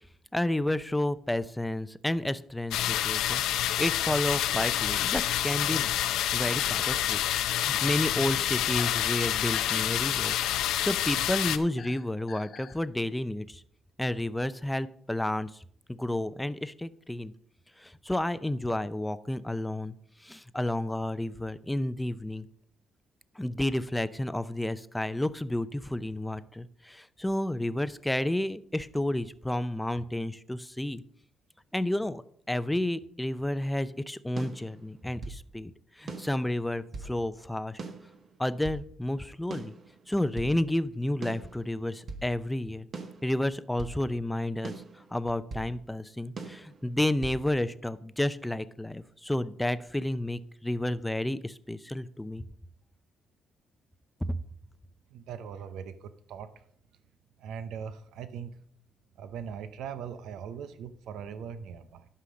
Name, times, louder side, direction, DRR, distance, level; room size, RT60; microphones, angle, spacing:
voice 1, 0.3-5.9 6.3-7.2 7.6-10.4 10.8-13.6 14.0-15.5 16.0-17.3 17.8-19.9 20.2-22.5 23.4-31.0 31.7-32.2 32.5-35.7 36.0-37.8 38.4-39.7 40.1-42.9 43.2-44.7 45.1-52.4 54.2-54.4, left 1 dB, 10° left, 14 dB, 0.6 m, -31 dB
sound 1, 2.7-11.6, left 12 dB, 90° left, 0.6 m, -28 dB
sound 2, 8.7-12.8, left 7 dB, 65° left, 1.2 m, -47 dB
sound 3, 34.4-35.4 36.1-37.2 37.8-38.9 39.5-40.6 41.2-42.3 42.9-44.0 44.6-45.7 46.4-47.4, right 3 dB, 50° right, 1.6 m, -41 dB
voice 2, 55.1-56.5 57.4-58.6 59.2-62.1, right 7 dB, 85° right, 12 dB, 0.6 m, -40 dB
11.5 x 5.7 x 5.0 m, 0.64 s
cardioid pair, 90°, 0 cm